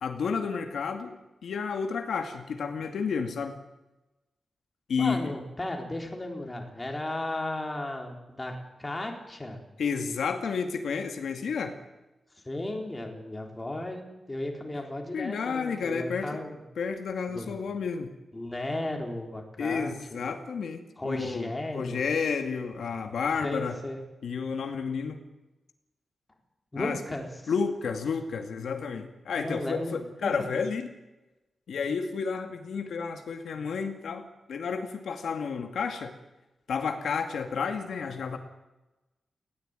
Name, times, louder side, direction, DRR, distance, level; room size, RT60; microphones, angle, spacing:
voice 1, 0.0-3.6 4.9-5.3 9.8-11.8 15.1-16.4 16.8-18.1 19.6-23.8 24.2-25.2 26.8-27.0 27.5-30.9 31.7-36.1 36.7-38.4, left 5 dB, 80° left, 5 dB, 2.3 m, -31 dB
voice 2, 5.0-9.6 12.4-16.6 17.3-17.6 18.3-20.4 21.0-22.0 23.4-24.0 26.7-27.3 29.4-30.5, left 1 dB, 15° left, 2 dB, 4.0 m, -35 dB
19.5 x 17.5 x 9.1 m, 1.0 s
wide cardioid pair, 160°, 0 cm